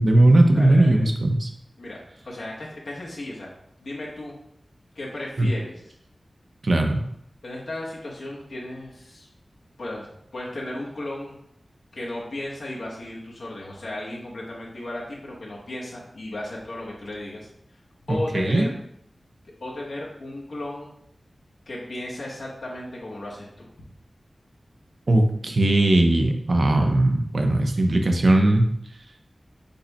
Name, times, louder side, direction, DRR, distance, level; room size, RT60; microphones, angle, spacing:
voice 1, 0.0-1.5 5.4-5.5 6.6-7.0 18.1-18.7 25.1-28.7, right 1 dB, 60° right, 4 dB, 0.6 m, -19 dB
voice 2, 0.5-1.1 1.8-2.0 2.2-3.5 3.8-4.4 4.9-5.8 7.4-9.3 9.8-10.1 10.3-11.4 11.9-17.5 18.1-18.7 19.6-20.9 21.7-23.7, left 1 dB, 80° left, -4 dB, 1.0 m, -35 dB
5.3 x 2.2 x 4.0 m, 0.72 s
wide cardioid pair, 75°, 0 cm